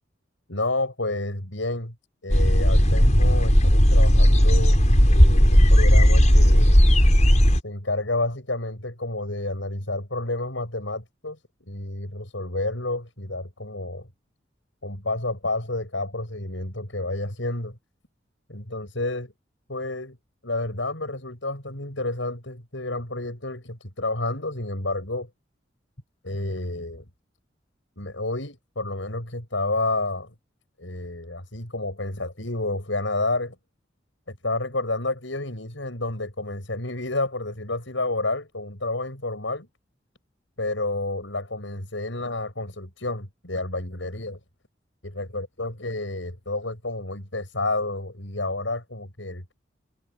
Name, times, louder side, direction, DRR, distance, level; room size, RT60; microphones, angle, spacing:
voice 1, 0.5-1.9 2.2-6.8 7.6-11.4 11.7-14.1 14.8-17.8 18.5-19.3 19.7-20.2 20.4-25.3 26.2-27.0 28.0-30.3 30.8-33.6 34.3-39.7 40.6-44.4 45.2-49.5, left 2 dB, 85° left, 7.0 m, -30 dB
sound 1, 2.3-7.6, equal, 40° left, 6.1 m, -16 dB
head